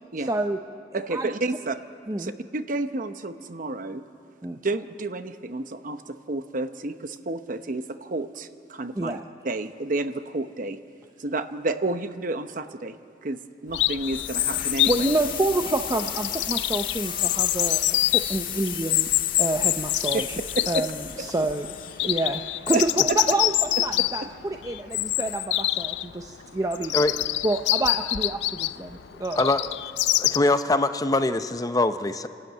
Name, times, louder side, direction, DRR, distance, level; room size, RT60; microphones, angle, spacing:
voice 1, 0.2-0.6 1.1-1.3 2.1-2.3 4.4-4.6 9.0-9.2 14.4-19.1 19.4-20.2 20.7-21.7 22.0-26.9 27.4-29.5, right 2 dB, 20° right, 4 dB, 0.6 m, -28 dB
voice 2, 0.9-1.8 2.2-4.0 4.5-9.2 9.4-10.8 11.2-13.0 13.2-15.1 20.1-20.3 20.7-20.8 22.7-23.2, right 2 dB, 50° right, 9 dB, 0.9 m, -30 dB
Chirp tweet, 13.7-30.4, left 15 dB, 90° left, 0.4 m, -26 dB
sound 1, 14.0-22.9, left 10 dB, 55° left, 1.6 m, -35 dB
voice 3, 29.3-29.7 30.2-32.3, left 2 dB, 20° left, 10 dB, 0.6 m, -23 dB
27.0 x 12.5 x 9.3 m, 2.4 s
head